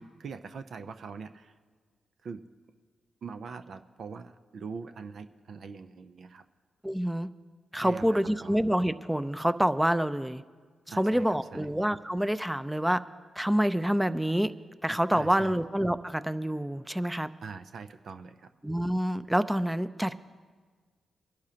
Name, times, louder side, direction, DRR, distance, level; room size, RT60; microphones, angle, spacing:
voice 1, 0.0-1.5 2.2-2.4 3.2-6.4 7.8-8.6 10.9-11.7 15.1-15.6 17.4-18.5, right 5 dB, 65° right, 9 dB, 0.6 m, -42 dB
voice 2, 6.8-7.3 7.7-10.4 11.0-13.0 13.4-14.5 14.8-17.3 18.6-20.2, equal, 10° right, 13 dB, 0.6 m, -27 dB
25.5 x 11.5 x 2.9 m, 1.5 s
supercardioid pair, 40°, 0 cm